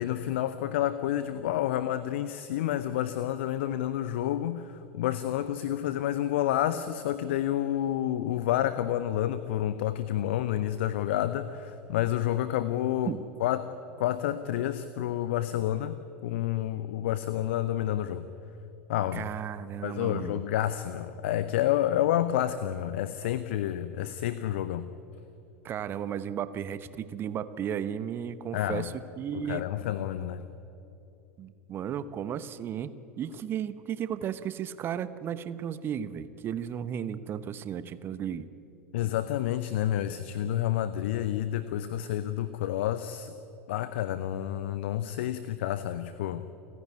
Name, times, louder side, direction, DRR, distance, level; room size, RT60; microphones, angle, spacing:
voice 1, 0.0-13.1 13.4-13.7 14.0-16.0 16.2-18.2 18.9-19.3 19.8-24.9 28.5-28.8 29.3-30.4 38.9-43.3 43.7-46.4, left 12 dB, 55° left, 13 dB, 0.8 m, -29 dB
voice 2, 19.1-20.4 25.6-29.6 31.4-38.5, right 9 dB, 30° right, 14 dB, 1.0 m, -34 dB
29.5 x 11.0 x 9.6 m, 2.9 s
figure-of-eight pair, 85°, 7 cm